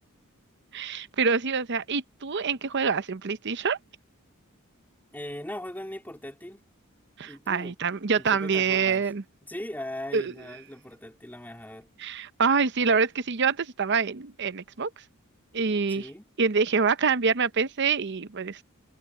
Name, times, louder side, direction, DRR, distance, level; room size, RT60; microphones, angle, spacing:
voice 1, 0.7-3.8 7.2-9.2 10.1-10.3 12.0-14.9 15.5-16.1 16.4-18.6, right 5 dB, 55° right, 0.8 m, -26 dB
voice 2, 5.1-6.6 7.2-9.1 9.4-11.9 15.9-16.3, left 1 dB, 10° left, 3.7 m, -39 dB
head